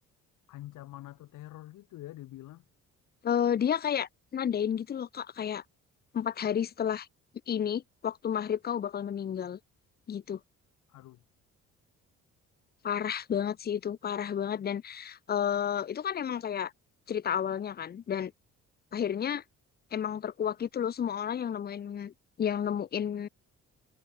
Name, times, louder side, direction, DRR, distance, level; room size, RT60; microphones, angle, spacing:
voice 1, 0.5-2.6 10.9-11.2, left 15 dB, 90° left, 6.0 m, -46 dB
voice 2, 3.2-5.6 6.1-7.1 7.5-9.6 10.1-10.4 12.8-16.7 17.1-18.3 18.9-19.4 19.9-22.1 22.4-23.3, left 8 dB, 35° left, 0.5 m, -31 dB
cardioid pair, 90°, 30 cm